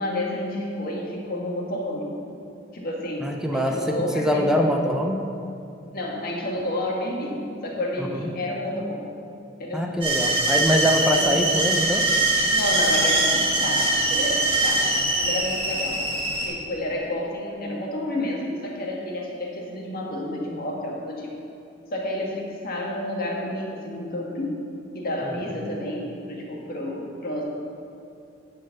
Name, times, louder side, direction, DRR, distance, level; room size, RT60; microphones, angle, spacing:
voice 1, 0.0-2.1 2.7-4.7 5.9-9.0 9.6-9.9 11.1-11.3 12.5-16.0 16.4-21.4 21.9-24.7 24.9-27.4, left 1 dB, 50° left, -2 dB, 1.6 m, -30 dB
voice 2, 3.2-5.2 8.0-8.3 9.7-12.1 25.2-25.3, equal, 5° right, 2 dB, 0.6 m, -23 dB
sound 1, 10.0-16.5, right 2 dB, 25° right, 1.8 m, -22 dB
9.9 x 4.5 x 7.7 m, 2.6 s
head